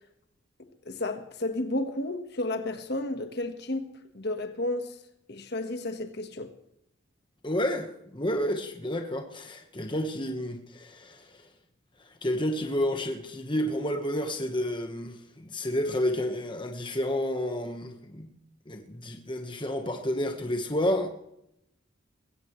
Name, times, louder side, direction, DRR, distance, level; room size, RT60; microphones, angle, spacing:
voice 1, 0.8-3.9 4.1-4.9 5.3-6.5, left 2 dB, 50° left, 1.5 m, -32 dB
voice 2, 7.4-11.4 12.2-18.3 18.7-21.1, left 1 dB, 25° left, 1.3 m, -30 dB
21.0 x 16.5 x 3.2 m
head